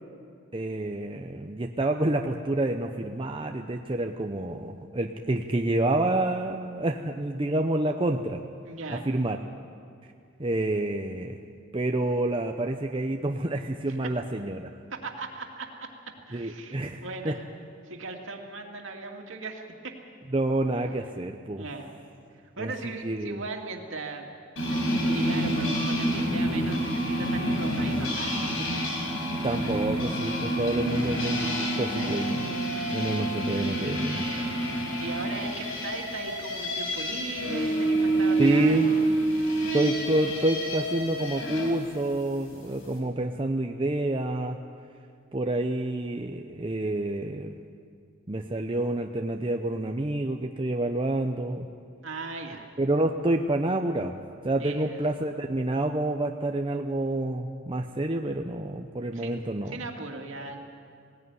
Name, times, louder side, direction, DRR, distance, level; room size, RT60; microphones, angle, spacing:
voice 1, 0.5-8.4 8.9-9.4 10.4-11.4 11.7-14.7 16.3-17.3 20.3-21.6 22.6-22.7 23.0-23.4 29.4-32.5 32.9-34.3 38.4-38.9 39.7-44.6 45.3-47.5 48.3-51.7 52.8-54.2 54.4-59.8, right 1 dB, 25° right, 3 dB, 0.7 m, -28 dB
voice 2, 8.7-9.1 13.9-14.1 14.9-15.7 16.3-17.4 17.8-19.9 21.6-21.9 22.6-24.2 24.7-28.8 31.0-31.2 31.9-32.1 34.3-34.6 35.0-39.1 52.0-52.7 54.6-55.0 59.1-60.6, right 3 dB, 70° right, 2 dB, 2.4 m, -38 dB
sound 1, 24.6-41.7, right 1 dB, 80° left, 4.6 m, -28 dB
19.5 x 17.0 x 9.6 m, 2.3 s
head